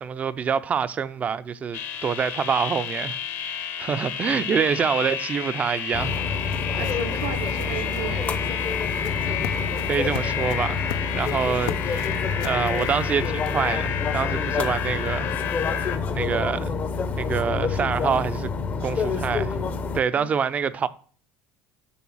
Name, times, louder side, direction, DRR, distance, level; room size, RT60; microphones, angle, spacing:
voice 1, 0.0-3.2 3.8-6.2 9.2-12.1 12.4-15.3 16.1-16.7 17.2-18.5 18.8-19.6 19.9-20.9, right 7 dB, 30° right, 0.5 m, -26 dB
sound 1, 1.7-16.0, left 9 dB, 55° left, 1.1 m, -31 dB
voice 2, 4.8-5.1 6.7-8.4 20.1-20.3, right 10 dB, 80° right, 0.9 m, -35 dB
sound 2, 5.6-13.8, left 9 dB, 85° left, 0.6 m, -41 dB
sound 3, 5.9-20.0, left 5 dB, 30° left, 0.7 m, -28 dB
7.1 x 5.6 x 6.1 m
cardioid pair, 130°, 5 cm